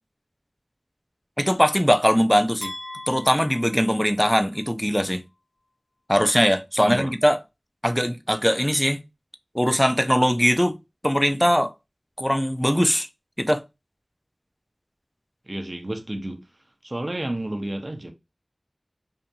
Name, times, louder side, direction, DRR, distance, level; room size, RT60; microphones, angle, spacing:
voice 1, 1.4-2.7 3.1-5.2 6.1-7.4 7.8-9.0 9.5-10.8 11.0-11.7 12.2-13.1 13.4-13.6, equal, 5° left, 0.4 m, -21 dB
sound 1, 2.6-4.7, left 1 dB, 75° left, 1.0 m, -40 dB
voice 2, 6.8-7.1 15.4-18.1, right 1 dB, 45° right, 0.6 m, -31 dB
2.7 x 2.5 x 2.2 m
wide cardioid pair, 45°, 0 cm